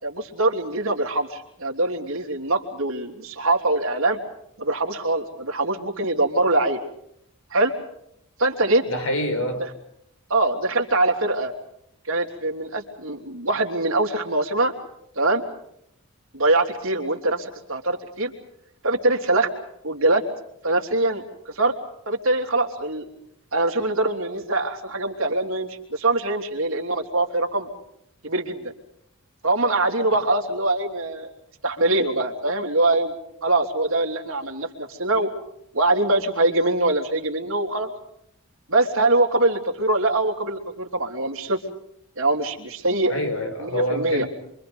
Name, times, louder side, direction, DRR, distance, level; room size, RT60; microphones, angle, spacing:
voice 1, 0.0-4.2 4.6-6.8 7.5-7.7 8.4-8.8 10.3-11.5 12.1-14.7 15.1-15.4 16.3-18.3 18.8-19.5 19.8-20.3 20.6-21.7 22.1-23.0 23.5-27.7 28.2-28.7 29.4-31.3 31.6-33.1 33.4-35.3 35.7-37.9 38.7-41.6 42.2-43.1 43.6-44.2, right 2 dB, 65° right, 3 dB, 3.2 m, -23 dB
voice 2, 8.9-9.7 30.1-30.2 43.1-44.3, left 1 dB, 70° left, 6 dB, 5.4 m, -26 dB
28.0 x 24.5 x 5.3 m, 0.73 s
head